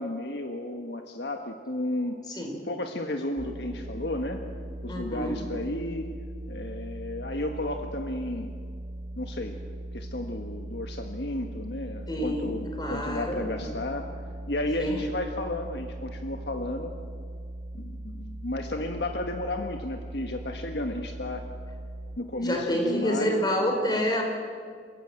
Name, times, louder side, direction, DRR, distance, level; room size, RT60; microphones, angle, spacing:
voice 1, 0.0-2.2 2.6-4.4 4.8-6.2 6.5-8.5 9.1-9.6 9.9-14.1 14.5-16.9 17.7-21.4 22.2-23.4, left 1 dB, 65° left, 5 dB, 1.5 m, -33 dB
sound 1, 3.4-22.2, right 1 dB, 85° right, 2.9 m, -39 dB
voice 2, 4.9-5.4 12.1-13.7 14.8-15.0 22.4-24.2, equal, 25° left, 2 dB, 4.7 m, -28 dB
28.5 x 16.0 x 9.0 m, 2.1 s
head